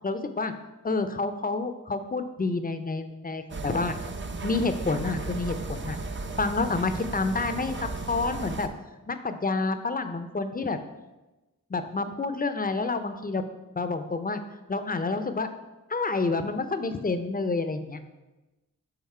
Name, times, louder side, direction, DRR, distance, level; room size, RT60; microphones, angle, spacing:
voice 1, 0.0-0.5 0.8-4.0 4.4-6.0 6.4-8.7 9.1-10.8 11.7-13.4 13.7-14.4 14.7-15.5 15.9-18.1, left 3 dB, 25° left, 9 dB, 0.6 m, -29 dB
sound 1, 3.5-8.7, right 3 dB, 35° right, 0.6 m, -35 dB
5.9 x 3.9 x 4.3 m, 1.1 s
cardioid pair, 40°, 35 cm